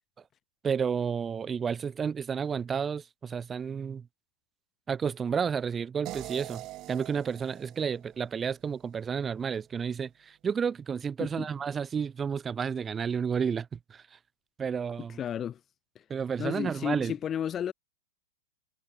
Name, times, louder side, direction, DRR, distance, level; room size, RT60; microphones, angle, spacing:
voice 1, 0.6-4.1 4.9-14.2 14.6-15.2 16.1-17.1, right 6 dB, 15° right, 2.4 m, -31 dB
sound 1, 6.1-9.1, right 17 dB, 35° right, 2.4 m, -44 dB
voice 2, 15.2-15.6 15.9-16.0 16.4-17.7, left 9 dB, 25° left, 1.5 m, -32 dB
hypercardioid pair, 130°, 0 cm